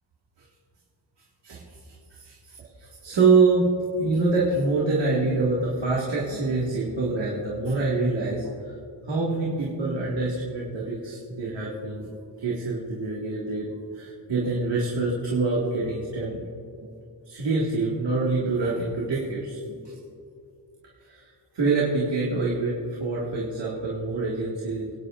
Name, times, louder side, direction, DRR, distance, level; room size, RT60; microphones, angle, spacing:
voice 1, 2.1-3.7 4.0-8.5 9.1-12.1 12.4-16.5 16.8-16.9 17.3-19.8 21.0-21.2 21.5-24.9, right 3 dB, 65° right, -5 dB, 2.0 m, -25 dB
24.0 x 9.9 x 2.5 m, 2.5 s
wide cardioid pair, 120°, 45 cm